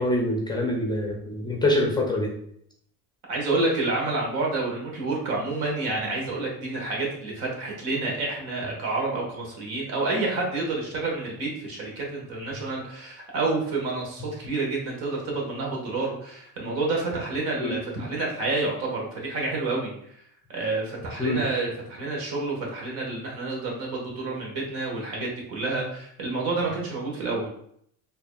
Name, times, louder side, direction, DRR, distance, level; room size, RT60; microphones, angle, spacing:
voice 1, 0.0-2.3 17.6-17.8 21.2-21.4, left 1 dB, 10° left, -1 dB, 0.5 m, -25 dB
voice 2, 3.3-20.2 20.5-27.5, right 3 dB, 65° right, -1 dB, 1.5 m, -29 dB
4.5 x 2.7 x 2.3 m, 0.69 s
supercardioid pair, 110°, 39 cm